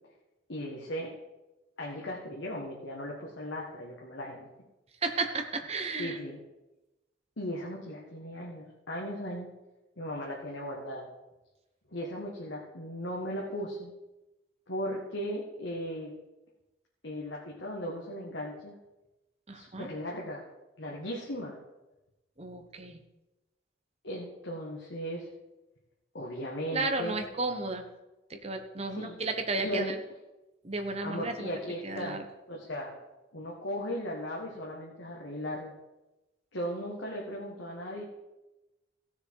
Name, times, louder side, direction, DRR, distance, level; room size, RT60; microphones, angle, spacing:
voice 1, 0.5-1.1 1.8-4.5 6.0-6.4 7.4-9.5 10.0-11.1 11.9-13.9 14.7-16.1 17.0-18.8 19.5-20.5 20.8-21.6 24.0-25.3 26.1-27.2 28.9-29.3 29.6-29.9 31.0-33.0 33.3-35.7 36.5-38.0, equal, 85° left, -2 dB, 1.7 m, -37 dB
voice 2, 5.0-6.2 19.5-19.9 22.4-23.0 26.7-27.8 28.3-30.0 30.6-31.5 31.8-32.2, right 3 dB, 35° right, 5 dB, 1.1 m, -33 dB
16.0 x 6.7 x 4.7 m, 1.0 s
head